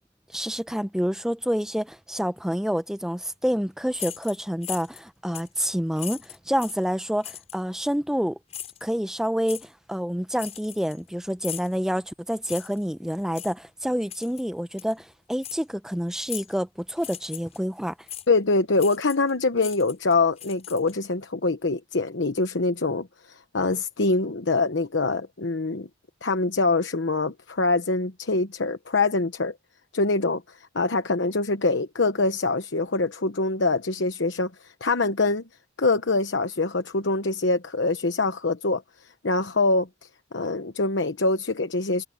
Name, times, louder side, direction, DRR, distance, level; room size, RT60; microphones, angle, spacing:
voice 1, 0.3-8.4 8.8-17.9, equal, 5° right, 0.7 m, -28 dB
sound 1, 3.9-5.0 5.3-5.6 6.0-6.8 7.2-7.6 8.5-8.8 9.5-9.6 10.4-11.1 11.4-11.7 12.5-12.8 13.3-13.5 14.1-14.4 14.8-14.9 15.4-15.6 16.3-16.6 17.0-17.6 18.1-18.3 18.8-19.3 19.6-21.1, left 10 dB, 35° left, 7.1 m, -38 dB
voice 2, 18.3-25.9 26.2-29.5 29.9-30.4 30.7-35.4 35.8-38.8 39.2-39.9 40.3-42.0, left 3 dB, 80° left, 1.0 m, -24 dB
head